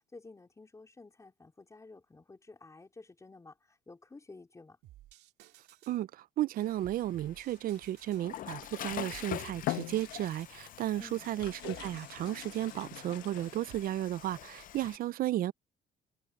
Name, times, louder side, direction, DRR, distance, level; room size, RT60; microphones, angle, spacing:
voice 1, 0.1-3.6 3.9-4.8 11.0-11.3, left 3 dB, 20° left, 4.1 m, -52 dB
sound 1, 4.8-6.0 6.5-8.3 8.8-10.6 11.1-12.9 13.4-13.9, right 14 dB, 80° right, 2.5 m, -56 dB
voice 2, 6.4-15.5, right 13 dB, 60° right, 0.5 m, -34 dB
Water / Toilet flush, 6.6-15.0, left 11 dB, 55° left, 0.7 m, -46 dB
sound 2, 9.6-10.6 11.2-13.9, left 15 dB, 85° left, 1.3 m, -41 dB
cardioid pair, 110°, 17 cm